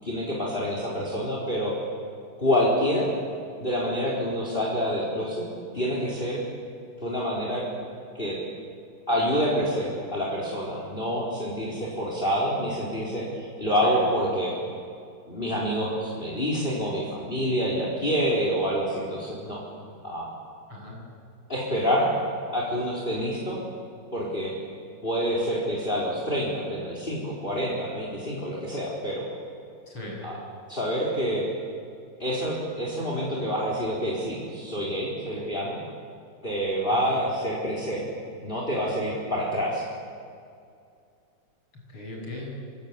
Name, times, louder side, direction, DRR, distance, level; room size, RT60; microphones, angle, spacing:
voice 1, 0.0-1.7 2.4-3.1 3.6-5.4 5.7-6.4 7.0-7.7 8.1-8.4 9.1-14.6 15.3-19.6 20.0-20.3 21.5-22.1 22.5-23.6 24.1-24.5 25.0-29.3 30.2-30.4 30.7-31.4 32.2-35.8 36.4-38.0 38.4-39.8, equal, 25° left, -3 dB, 4.5 m, -27 dB
voice 2, 20.7-21.0 29.9-30.3 36.9-37.2 41.7-42.6, left 1 dB, 85° left, -1 dB, 9.0 m, -39 dB
25.5 x 25.5 x 8.8 m, 2.4 s
omnidirectional pair, 2.3 m